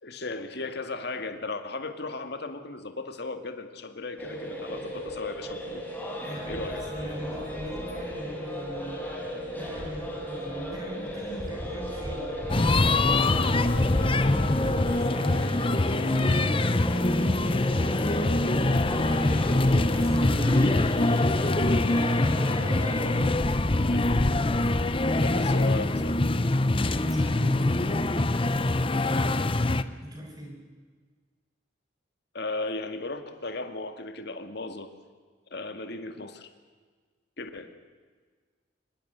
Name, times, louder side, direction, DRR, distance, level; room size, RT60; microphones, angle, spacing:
voice 1, 0.0-5.8 6.5-6.9 23.9-24.3 25.2-26.2 32.3-34.9 35.5-36.5 37.4-37.7, left 3 dB, 60° left, 7 dB, 2.0 m, -36 dB
sound 1, 4.2-23.3, equal, 10° left, 5.1 m, -36 dB
voice 2, 6.2-9.0 9.5-12.3 12.6-17.4 17.9-19.6 19.9-22.4 25.2-25.7 26.8-29.7 30.0-30.6, equal, 20° right, 1 dB, 5.6 m, -41 dB
sound 2, 12.5-29.8, left 2 dB, 30° left, 0.7 m, -24 dB
25.0 x 21.0 x 6.9 m, 1.5 s
head